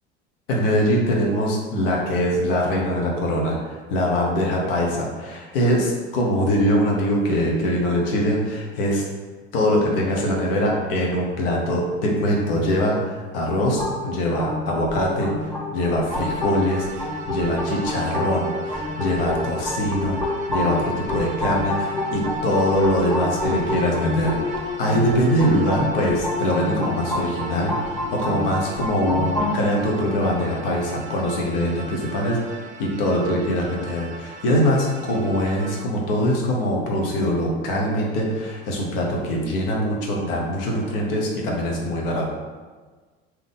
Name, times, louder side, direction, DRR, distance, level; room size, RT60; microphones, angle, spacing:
voice 1, 0.5-9.1 9.5-42.3, equal, 60° left, -2 dB, 1.0 m, -23 dB
sound 1, 13.8-29.5, left 2 dB, 5° left, 1.4 m, -28 dB
sound 2, 16.1-35.9, right 4 dB, 25° right, 0.4 m, -40 dB
3.6 x 2.9 x 3.7 m, 1.4 s
figure-of-eight pair, 70°, 32 cm